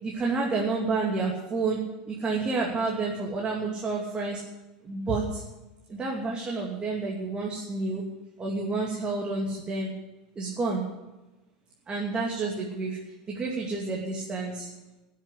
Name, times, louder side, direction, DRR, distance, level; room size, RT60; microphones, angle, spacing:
voice 1, 0.0-4.4 4.8-5.4 5.9-8.1 8.4-9.9 10.4-10.8 11.9-14.7, right 3 dB, 25° right, -2 dB, 2.7 m, -29 dB
14.0 x 7.5 x 9.8 m, 1.1 s
hypercardioid pair, 95°, 4 cm